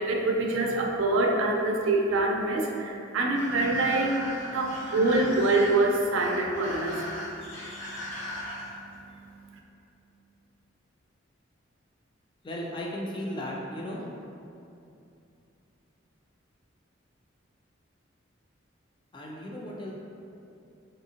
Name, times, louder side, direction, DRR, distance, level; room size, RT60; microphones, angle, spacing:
voice 1, 0.0-7.6 8.2-9.3, right 2 dB, 85° right, 1 dB, 0.4 m, -26 dB
sound 1, 3.3-8.9, left 1 dB, 75° left, 0.8 m, -39 dB
voice 2, 12.4-14.0 19.1-19.9, left 1 dB, 25° left, -3 dB, 0.4 m, -35 dB
3.5 x 2.7 x 2.8 m, 2.6 s
head